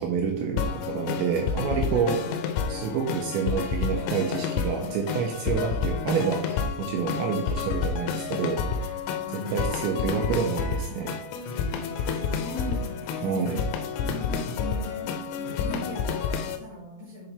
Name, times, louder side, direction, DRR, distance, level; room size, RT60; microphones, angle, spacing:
voice 1, 0.0-2.2 2.7-8.9 9.3-11.1 13.2-13.6, right 6 dB, 80° right, 2 dB, 2.7 m, -28 dB
sound 1, 0.6-16.6, left 6 dB, 85° left, 3.2 m, -30 dB
voice 2, 9.2-10.4 11.4-11.5 11.9-13.7 14.0-17.3, left 2 dB, 65° left, -5 dB, 1.8 m, -39 dB
9.9 x 3.8 x 3.3 m, 0.74 s
omnidirectional pair, 5.8 m